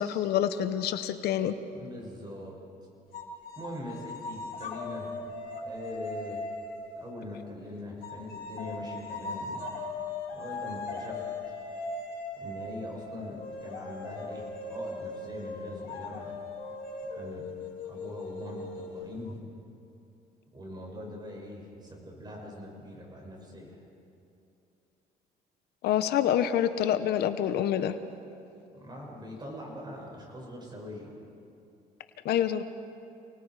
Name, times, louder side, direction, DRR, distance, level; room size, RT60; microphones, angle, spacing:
voice 1, 0.0-1.6 25.8-28.0 32.2-32.6, left 10 dB, 75° left, 10 dB, 1.0 m, -27 dB
voice 2, 1.7-2.6 3.6-5.1 5.6-6.4 7.0-9.7 10.3-11.2 12.4-16.3 17.1-17.4 17.8-19.4 20.5-23.8 28.7-31.2, left 1 dB, 25° right, -1 dB, 7.2 m, -42 dB
sound 1, 3.1-7.0 8.0-19.3, left 3 dB, 60° left, 4.2 m, -39 dB
29.0 x 20.0 x 4.9 m, 2.7 s
cardioid pair, 110°, 17 cm